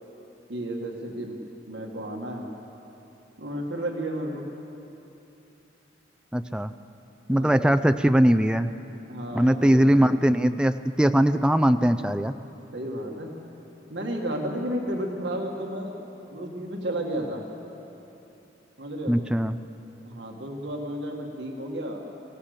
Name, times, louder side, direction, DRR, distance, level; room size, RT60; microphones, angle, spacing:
voice 1, 0.5-1.4 1.7-2.5 3.4-4.5 7.3-7.8 9.1-10.1 12.7-13.3 13.9-15.9 16.3-17.4 18.8-19.2 20.1-22.0, right 1 dB, 70° right, 1 dB, 1.9 m, -32 dB
voice 2, 6.3-6.7 7.3-8.7 9.3-12.3 19.1-19.6, equal, 5° right, 9 dB, 0.4 m, -21 dB
24.0 x 16.5 x 6.6 m, 2.9 s
head